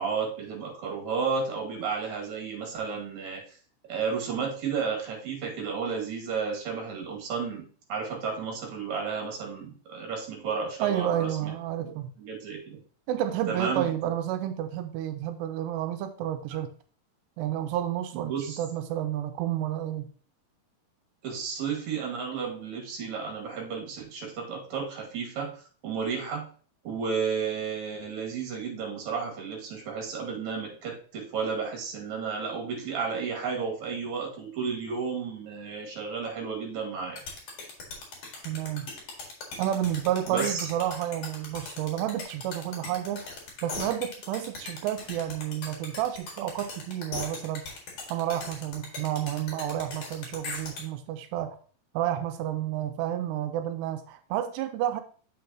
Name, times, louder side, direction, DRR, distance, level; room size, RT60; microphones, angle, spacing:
voice 1, 0.0-3.6 3.9-7.6 7.9-11.5 11.8-12.8 13.5-14.1 18.1-18.6 21.2-26.5 26.8-37.2 40.3-40.7, right 5 dB, 50° right, -1 dB, 3.0 m, -32 dB
voice 2, 10.8-12.1 13.1-16.7 17.4-20.1 38.5-38.9 39.6-43.3 43.6-47.8 48.1-51.6 51.9-55.0, right 11 dB, 85° right, 8 dB, 2.7 m, -30 dB
sound 1, 37.2-50.8, left 3 dB, 50° left, 2.5 m, -39 dB
7.7 x 6.2 x 2.8 m, 0.43 s
omnidirectional pair, 4.8 m